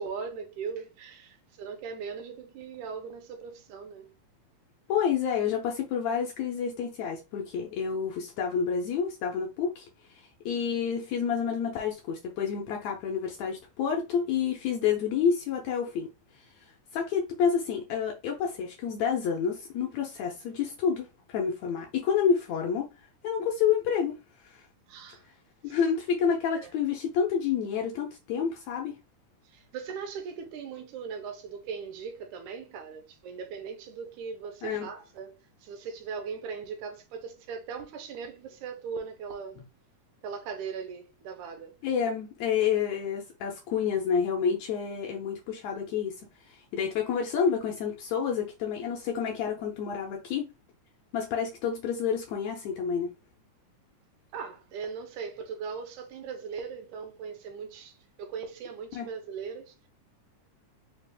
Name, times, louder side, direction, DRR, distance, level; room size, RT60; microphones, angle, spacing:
voice 1, 0.0-4.1 24.9-25.2 25.7-25.8 26.2-26.7 29.5-39.6 40.2-41.8 54.3-59.7, right 6 dB, 80° right, 2.1 m, -39 dB
voice 2, 4.9-9.9 10.5-16.1 16.9-21.1 21.3-22.9 23.2-24.1 24.4-24.6 25.6-28.9 34.6-34.9 41.8-46.2 46.5-50.5 51.1-53.1 58.9-59.1, left 7 dB, 75° left, 1.7 m, -29 dB
5.0 x 2.4 x 3.3 m
omnidirectional pair, 3.6 m